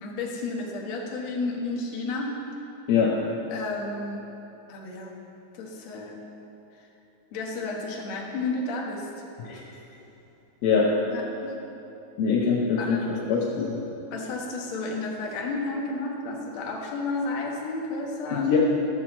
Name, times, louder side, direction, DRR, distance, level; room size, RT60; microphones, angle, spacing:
voice 1, 0.0-2.3 3.5-4.3 4.7-5.1 5.5-6.2 7.3-9.1 11.1-11.6 12.8-13.1 14.1-18.5, left 3 dB, 60° left, -1 dB, 2.0 m, -32 dB
voice 2, 12.2-13.0 13.3-13.8 18.3-18.6, left 6 dB, 80° left, -4 dB, 2.8 m, -23 dB
13.5 x 4.7 x 7.2 m, 2.9 s
omnidirectional pair, 4.3 m